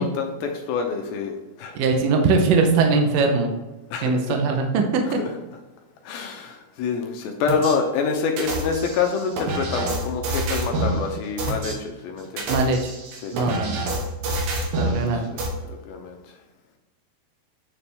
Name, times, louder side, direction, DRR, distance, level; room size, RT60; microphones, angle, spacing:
voice 1, 0.0-1.8 3.9-4.4 5.1-5.4 6.0-12.6 13.2-13.4 14.8-15.4 15.7-16.2, left 5 dB, 75° left, 3 dB, 2.3 m, -27 dB
voice 2, 1.8-3.5 4.0-5.0 12.5-12.8 13.3-13.8 14.8-15.3, right 4 dB, 90° right, 3 dB, 1.8 m, -20 dB
sound 1, 7.5-7.7 8.4-11.0 11.4-11.7 12.2-15.0 15.4-15.5, right 2 dB, 65° right, 2.8 m, -27 dB
9.4 x 4.4 x 3.4 m, 1.1 s
omnidirectional pair, 4.8 m